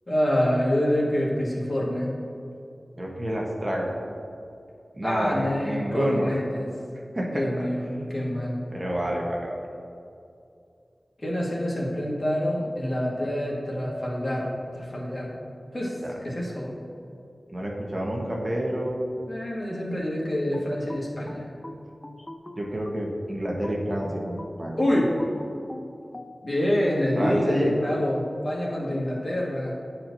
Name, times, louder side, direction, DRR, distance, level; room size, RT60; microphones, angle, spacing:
voice 1, 0.1-2.1 5.0-6.7 7.3-8.6 11.2-15.5 15.7-16.0 16.2-16.7 18.3-18.5 19.3-21.5 24.8-25.1 26.4-29.7, left 1 dB, 40° left, -5 dB, 1.6 m, -26 dB
voice 2, 3.0-3.9 5.0-6.3 7.1-7.4 8.7-9.6 16.0-16.1 17.5-19.0 22.6-24.8 27.2-27.7, right 1 dB, 35° right, -2 dB, 1.0 m, -28 dB
sound 1, 20.5-23.1 23.6-26.3, left 1 dB, 25° left, 0.4 m, -42 dB
11.5 x 4.4 x 2.7 m, 2.5 s
wide cardioid pair, 75°, 0 cm